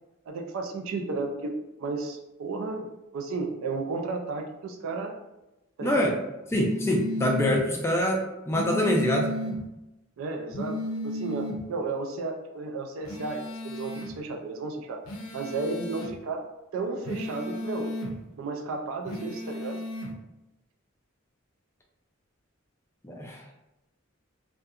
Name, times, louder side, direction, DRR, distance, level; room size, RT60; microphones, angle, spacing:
voice 1, 0.3-5.2 5.8-6.1 10.2-10.8 11.0-15.0 15.3-16.4 16.7-17.9 18.4-19.8, right 3 dB, 75° right, 3 dB, 0.3 m, -33 dB
voice 2, 5.8-6.1 6.5-9.3 23.0-23.4, left 1 dB, 10° left, -1 dB, 0.3 m, -25 dB
sound 1, 6.5-7.6 8.5-9.6 10.5-11.6 13.1-14.1 15.1-16.1 17.1-18.1 19.1-20.1, left 1 dB, 85° left, 0.5 m, -33 dB
2.6 x 2.1 x 2.3 m, 0.97 s
head